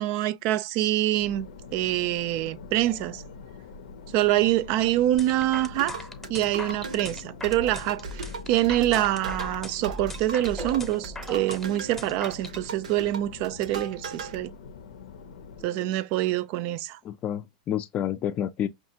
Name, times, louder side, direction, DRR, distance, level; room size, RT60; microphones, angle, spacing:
voice 1, 0.0-1.5 1.7-3.2 4.1-6.0 6.3-14.5 15.6-17.0, right 14 dB, 50° right, 0.4 m, -25 dB
sound 1, 1.2-15.6, left 4 dB, 80° left, 0.6 m, -44 dB
sound 2, 5.2-12.6, left 2 dB, 5° left, 0.8 m, -40 dB
sound 3, 5.7-14.4, right 4 dB, 85° right, 0.7 m, -38 dB
voice 2, 17.0-18.7, left 10 dB, 35° left, 0.4 m, -30 dB
5.6 x 2.3 x 2.8 m
hypercardioid pair, 110°, 4 cm